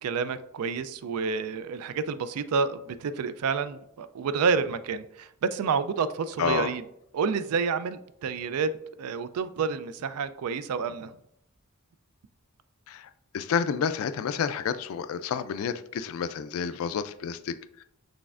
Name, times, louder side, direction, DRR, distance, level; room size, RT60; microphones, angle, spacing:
voice 1, 0.0-6.8 7.1-8.7 9.0-11.1, right 5 dB, 85° right, 13 dB, 0.3 m, -29 dB
voice 2, 6.4-6.7 12.9-17.8, left 7 dB, 70° left, 12 dB, 0.3 m, -30 dB
6.1 x 3.3 x 2.4 m, 0.75 s
head